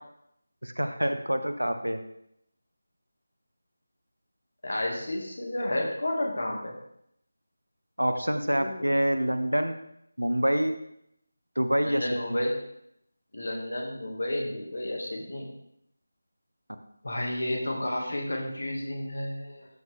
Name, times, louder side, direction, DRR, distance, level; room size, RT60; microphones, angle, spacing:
voice 1, 0.6-2.0 8.0-9.8 10.2-10.7 11.6-12.0 12.3-12.4, equal, 85° right, 8 dB, 0.9 m, -26 dB
voice 2, 4.6-6.7 8.5-9.0 11.8-12.6 13.3-15.5 17.0-19.7, left 1 dB, 60° left, 0 dB, 2.2 m, -31 dB
12.5 x 4.7 x 3.6 m, 0.76 s
figure-of-eight pair, 165°, 0 cm